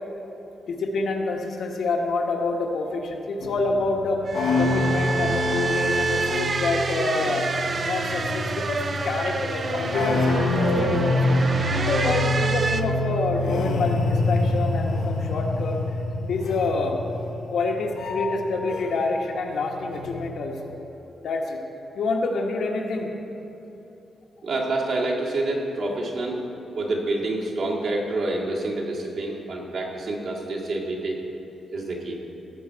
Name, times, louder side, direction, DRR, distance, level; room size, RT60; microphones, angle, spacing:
voice 1, 0.7-4.2 4.6-7.4 7.8-11.4 11.7-15.8 16.2-17.0 17.5-20.7 21.2-21.6 21.9-23.1, left 3 dB, 65° left, 1 dB, 1.1 m, -27 dB
sound 1, 3.4-19.2 19.5-20.3, left 2 dB, 80° left, 0.9 m, -26 dB
sound 2, 4.3-12.8, right 4 dB, 35° right, 0.4 m, -28 dB
voice 2, 24.4-26.4 26.7-31.2 31.7-32.2, right 2 dB, 60° right, -4 dB, 1.9 m, -27 dB
16.0 x 7.0 x 4.6 m, 2.9 s
wide cardioid pair, 170°, 0 cm